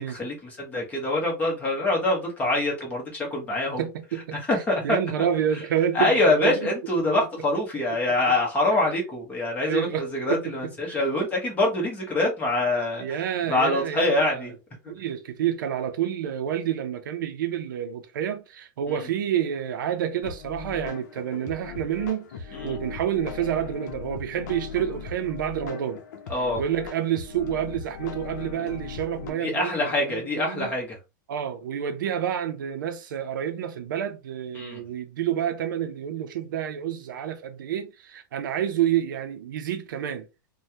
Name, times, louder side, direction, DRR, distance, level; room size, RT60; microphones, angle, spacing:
voice 1, 0.0-3.8 4.3-5.0 5.9-13.2 13.5-14.5 22.5-22.8 26.3-26.6 29.4-31.0 34.5-34.8, left 2 dB, 15° left, 1.1 m, -25 dB
voice 2, 3.8-6.7 7.0-7.3 7.9-8.0 8.7-8.8 9.6-11.0 13.0-14.6 14.9-26.0 26.6-30.7 31.3-40.3, right 9 dB, 75° right, 0.6 m, -29 dB
sound 1, 20.2-29.3, left 5 dB, 60° left, 0.7 m, -38 dB
3.2 x 2.3 x 2.8 m
supercardioid pair, 160°, 11 cm